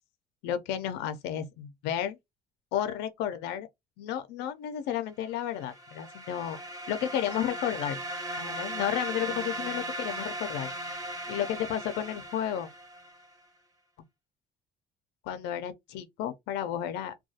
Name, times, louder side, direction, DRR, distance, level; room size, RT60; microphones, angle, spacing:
voice 1, 0.4-2.2 2.7-3.7 4.0-6.6 6.9-8.0 8.4-10.7 11.3-12.7 15.2-17.1, left 10 dB, 90° left, 0.4 m, -32 dB
sound 1, 5.5-13.3, right 1 dB, 20° right, 0.9 m, -37 dB
2.3 x 2.2 x 2.6 m
cardioid pair, 110°, 17 cm